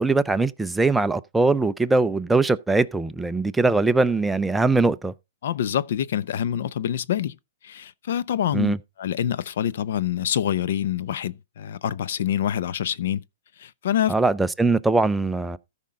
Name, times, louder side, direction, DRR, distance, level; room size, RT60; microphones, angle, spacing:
voice 1, 0.0-5.1 8.5-8.8 14.1-15.6, right 3 dB, 5° right, 0.5 m, -21 dB
voice 2, 5.4-7.3 7.6-13.2 13.6-14.1, left 10 dB, 65° left, 0.6 m, -26 dB
14.5 x 5.4 x 3.6 m
hypercardioid pair, 150°, 0 cm